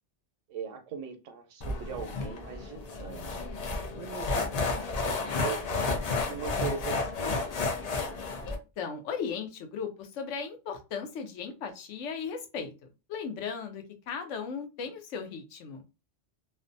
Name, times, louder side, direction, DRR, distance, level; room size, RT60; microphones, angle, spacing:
voice 1, 0.5-3.5 3.9-5.9 6.2-7.7, right 6 dB, 85° right, 6 dB, 0.9 m, -40 dB
sound 1, 1.6-8.6, left 3 dB, 60° left, 0.4 m, -32 dB
voice 2, 8.4-12.7 13.1-15.8, left 6 dB, 80° left, 6 dB, 0.9 m, -37 dB
2.5 x 2.1 x 2.5 m, 0.29 s
omnidirectional pair, 1.2 m